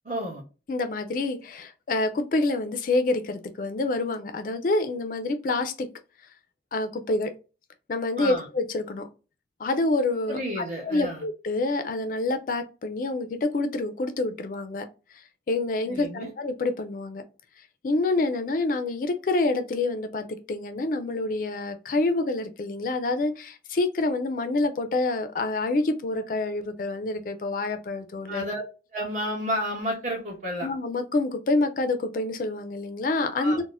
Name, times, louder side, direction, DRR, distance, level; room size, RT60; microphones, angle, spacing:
voice 1, 0.0-0.4 8.2-8.5 10.3-11.2 15.9-16.3 28.3-28.6 28.9-30.7 33.4-33.6, equal, 45° right, 1.1 m, -31 dB
voice 2, 0.7-5.9 6.7-7.3 7.9-9.1 9.6-14.9 15.5-17.2 17.8-28.5 30.6-33.6, left 2 dB, 50° left, 0.3 m, -27 dB
4.0 x 2.1 x 2.4 m
head